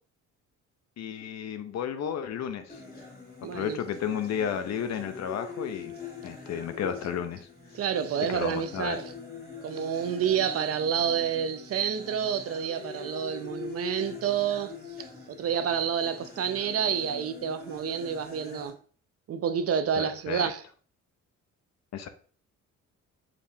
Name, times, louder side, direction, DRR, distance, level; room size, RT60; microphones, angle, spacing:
voice 1, 1.0-2.8 3.5-5.9 6.2-7.5 8.3-9.0 20.0-20.5 21.9-22.1, left 8 dB, 60° left, 0.7 m, -32 dB
sound 1, 2.7-18.7, left 4 dB, 30° left, 1.9 m, -43 dB
voice 2, 3.4-3.8 7.7-9.1 9.6-18.8 19.3-20.6, right 8 dB, 50° right, 0.5 m, -29 dB
5.0 x 3.5 x 2.7 m
cardioid pair, 90°, 30 cm